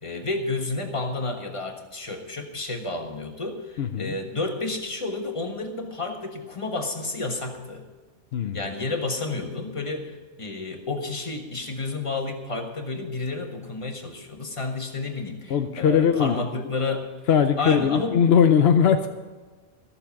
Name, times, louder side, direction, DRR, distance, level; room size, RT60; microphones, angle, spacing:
voice 1, 0.0-7.8 8.5-17.1 17.6-18.2, left 3 dB, 25° left, 3 dB, 1.5 m, -31 dB
voice 2, 3.8-4.2 8.3-8.7 15.5-16.3 17.3-19.1, left 7 dB, 65° left, 7 dB, 0.9 m, -20 dB
14.5 x 7.0 x 7.0 m, 1.3 s
omnidirectional pair, 1.2 m